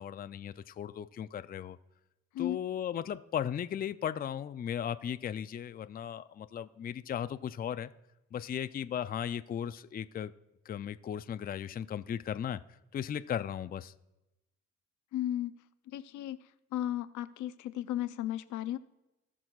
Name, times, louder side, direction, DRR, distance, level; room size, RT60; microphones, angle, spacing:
voice 1, 0.0-1.8 2.4-7.9 8.3-10.3 10.7-13.9, left 9 dB, 30° left, 12 dB, 0.4 m, -36 dB
voice 2, 15.1-15.6 15.9-16.4 16.7-18.8, left 13 dB, 80° left, 13 dB, 0.6 m, -34 dB
17.5 x 6.2 x 2.4 m, 0.98 s
cardioid pair, 90°, 30 cm